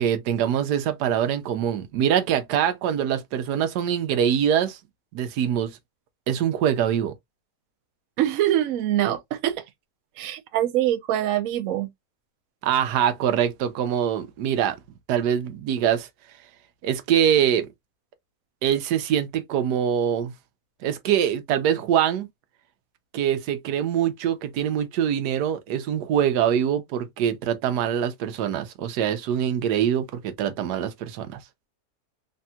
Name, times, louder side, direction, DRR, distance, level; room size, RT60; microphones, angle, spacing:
voice 1, 0.0-4.8 5.1-5.7 6.3-7.1 12.6-14.8 15.1-16.1 16.8-17.7 18.6-20.3 20.8-22.3 23.1-31.4, right 9 dB, 85° right, 1.2 m, -24 dB
voice 2, 8.2-9.6 10.2-11.9, right 12 dB, 65° right, 0.9 m, -24 dB
3.3 x 2.7 x 2.2 m
omnidirectional pair, 1.7 m